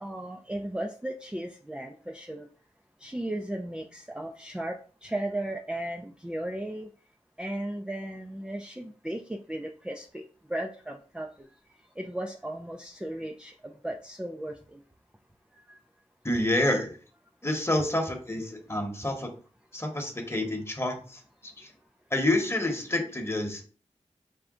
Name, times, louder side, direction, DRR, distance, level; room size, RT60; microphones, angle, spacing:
voice 1, 0.0-2.5 3.0-6.9 7.4-10.2 10.5-11.3 12.0-14.8 15.7-15.8, right 1 dB, 5° right, 2 dB, 0.4 m, -36 dB
voice 2, 16.2-16.9 17.4-19.3 19.7-21.2 21.6-21.7 22.1-23.6, left 1 dB, 20° left, 2 dB, 1.1 m, -28 dB
4.9 x 2.2 x 3.6 m, 0.40 s
wide cardioid pair, 50°, 12 cm